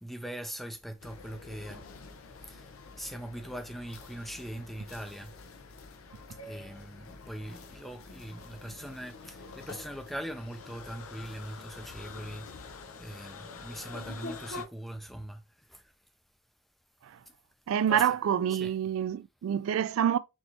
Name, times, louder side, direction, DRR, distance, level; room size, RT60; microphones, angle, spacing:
voice 1, 0.0-1.8 2.4-2.6 3.0-5.3 6.4-12.5 13.0-15.4 15.7-15.8 17.9-18.2 18.5-18.8, right 1 dB, ahead, 0.4 m, -41 dB
sound 1, 1.0-14.6, left 3 dB, 90° left, 0.7 m, -46 dB
voice 2, 17.7-20.2, right 9 dB, 80° right, 0.3 m, -27 dB
4.3 x 3.2 x 2.9 m
head